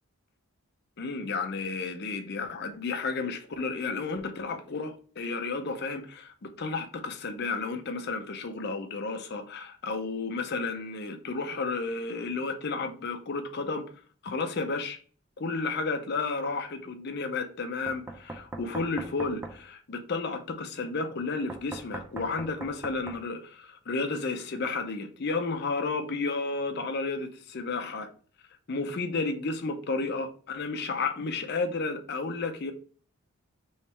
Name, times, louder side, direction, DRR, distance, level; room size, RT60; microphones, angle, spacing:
voice 1, 1.0-13.9 14.2-15.0 15.4-28.1 28.7-32.7, left 3 dB, 50° left, 0.5 m, -32 dB
Knock, 17.9-19.6 21.5-23.2, right 2 dB, 10° right, 0.4 m, -40 dB
3.4 x 3.1 x 4.3 m
head